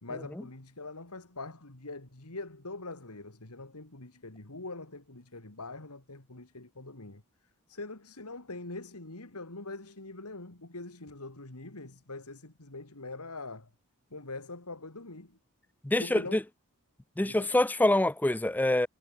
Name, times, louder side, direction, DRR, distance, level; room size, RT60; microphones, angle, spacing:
voice 1, 0.0-7.2 7.7-13.7 14.1-15.4 16.0-16.4 17.2-17.5, left 2 dB, 85° left, 2.9 m, -43 dB
voice 2, 15.8-16.4 17.2-18.9, left 1 dB, 10° left, 0.5 m, -25 dB
head